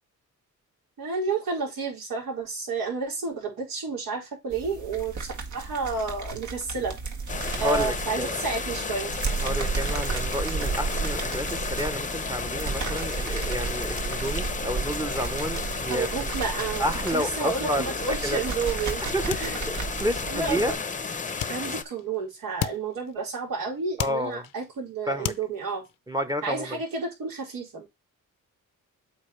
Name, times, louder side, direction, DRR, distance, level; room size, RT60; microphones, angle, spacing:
voice 1, 1.0-6.9 7.6-9.1 15.9-16.8 17.1-19.0 19.3-19.6 20.3-20.8 21.5-25.8 26.4-27.9, right 4 dB, 85° right, 4.5 m, -31 dB
sound 1, 4.5-20.8, right 5 dB, 60° right, 1.7 m, -33 dB
sound 2, 7.3-21.8, left 5 dB, 25° left, 0.7 m, -33 dB
voice 2, 7.6-8.4 9.4-16.1 16.8-17.9 18.2-18.4 19.1-19.3 20.0-20.7 24.0-24.5 25.1-25.3 26.1-26.8, equal, 10° right, 0.9 m, -30 dB
sound 3, 19.3-20.2 21.4-22.3 22.6-23.5 23.7-24.8 25.2-26.0, left 12 dB, 75° left, 0.7 m, -36 dB
8.3 x 5.1 x 3.2 m
cardioid pair, 115°, 32 cm